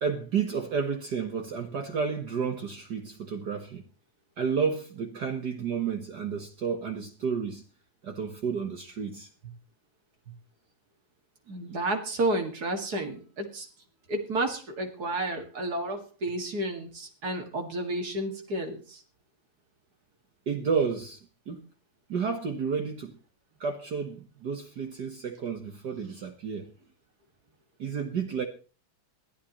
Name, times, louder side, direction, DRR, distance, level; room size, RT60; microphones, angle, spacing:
voice 1, 0.0-3.8 4.4-7.6 8.0-9.5 10.3-10.4 20.5-21.6 22.1-23.2 23.6-26.7 27.8-28.4, right 6 dB, 55° right, 1.2 m, -31 dB
voice 2, 11.5-13.7 14.1-19.0, right 1 dB, 35° right, 2.3 m, -31 dB
21.5 x 13.5 x 3.1 m
omnidirectional pair, 3.3 m